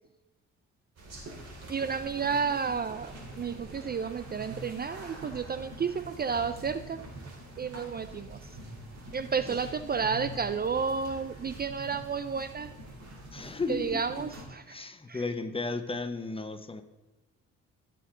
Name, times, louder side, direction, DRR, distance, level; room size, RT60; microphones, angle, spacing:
sound 1, 1.0-14.4, right 1 dB, 55° right, 4.1 m, -45 dB
voice 1, 1.7-7.0 7.6-8.4 9.1-12.7 13.7-14.8 15.1-15.2, right 6 dB, 30° right, 12 dB, 0.5 m, -31 dB
voice 2, 13.3-14.3 14.7-16.8, left 3 dB, 20° left, 9 dB, 1.1 m, -35 dB
17.0 x 6.8 x 3.8 m, 1.1 s
cardioid pair, 90°, 30 cm